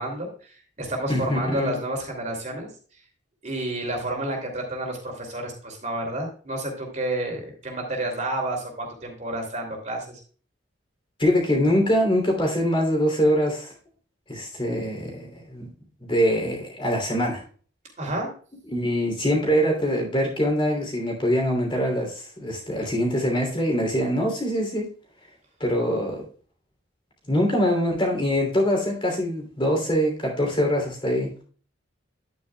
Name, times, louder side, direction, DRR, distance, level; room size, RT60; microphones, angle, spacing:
voice 1, 0.0-2.7 3.4-10.2 18.0-18.3, right 1 dB, 40° right, 2.9 m, -30 dB
voice 2, 1.1-1.8 11.2-13.7 14.3-15.7 16.1-17.4 18.7-24.9 25.6-26.3 27.3-31.3, equal, 25° left, 3.0 m, -23 dB
11.0 x 9.2 x 2.3 m
head